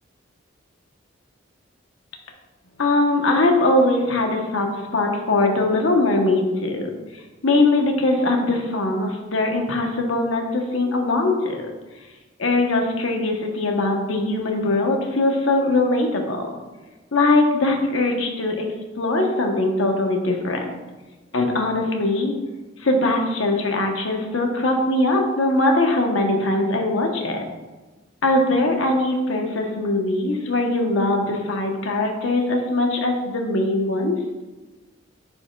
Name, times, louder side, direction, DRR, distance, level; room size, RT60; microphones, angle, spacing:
voice 1, 2.8-6.9 7.4-11.7 12.4-16.5 17.1-18.7 19.0-20.8 21.3-22.4 22.8-27.4 28.2-34.2, left 2 dB, 80° left, 2 dB, 1.0 m, -21 dB
10.0 x 4.6 x 2.3 m, 1.2 s
head